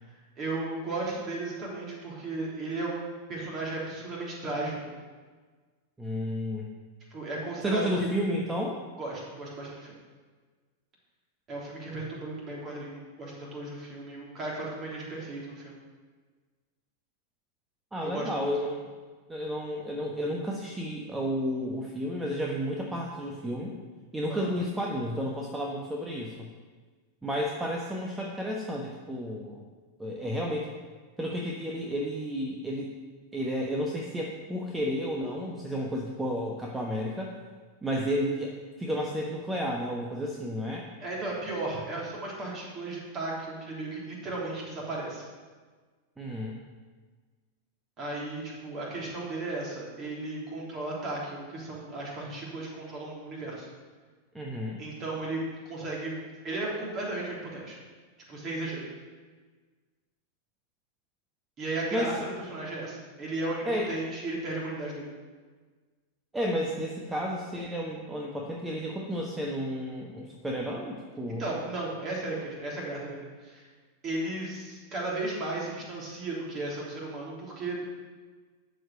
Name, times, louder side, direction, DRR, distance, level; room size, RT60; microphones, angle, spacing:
voice 1, 0.4-4.9 7.1-8.1 9.0-10.0 11.5-15.8 18.0-18.5 24.3-24.5 41.0-45.3 48.0-53.7 54.8-56.1 56.4-57.8 58.3-58.8 61.6-65.1 71.4-73.7 74.0-77.8, right 2 dB, 30° right, -4 dB, 3.3 m, -35 dB
voice 2, 6.0-6.7 7.6-8.8 17.9-18.9 19.3-23.7 24.1-26.5 27.2-29.6 30.0-30.7 31.2-32.9 33.3-37.4 37.8-40.8 46.2-46.6 54.3-54.8 61.9-62.1 63.6-63.9 66.3-71.4, equal, 10° right, -1 dB, 1.2 m, -32 dB
12.0 x 5.0 x 6.7 m, 1.4 s
figure-of-eight pair, 90°, 0 cm